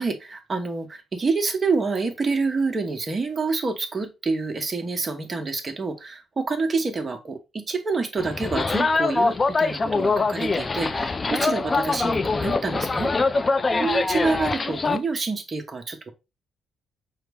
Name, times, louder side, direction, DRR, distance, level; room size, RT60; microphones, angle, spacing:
voice 1, 0.0-16.1, right 4 dB, 35° right, 5 dB, 0.9 m, -27 dB
sound 1, 8.2-15.0, left 3 dB, 30° left, 0.3 m, -23 dB
5.6 x 2.0 x 3.4 m, 0.26 s
cardioid pair, 90°, 0 cm